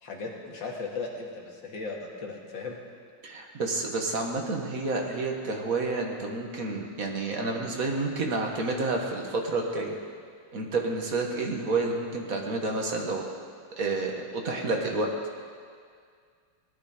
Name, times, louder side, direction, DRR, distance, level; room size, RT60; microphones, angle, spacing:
voice 1, 0.0-2.8, left 4 dB, 70° left, -1 dB, 2.5 m, -37 dB
voice 2, 3.2-10.0 10.5-13.2 13.8-15.1, right 3 dB, 45° right, 1 dB, 1.8 m, -29 dB
18.5 x 11.5 x 5.0 m, 2.1 s
omnidirectional pair, 2.1 m